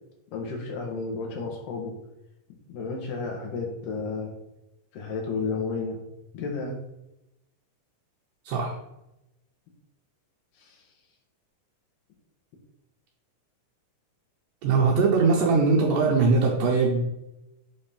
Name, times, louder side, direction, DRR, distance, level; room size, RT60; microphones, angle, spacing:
voice 1, 0.3-1.9 2.7-4.3 4.9-6.0 6.3-6.8 10.7-10.8, left 4 dB, 80° left, 1 dB, 2.8 m, -32 dB
voice 2, 8.5-8.8 14.6-17.1, right 4 dB, 85° right, -3 dB, 2.5 m, -21 dB
7.7 x 4.3 x 3.5 m, 0.89 s
omnidirectional pair, 3.8 m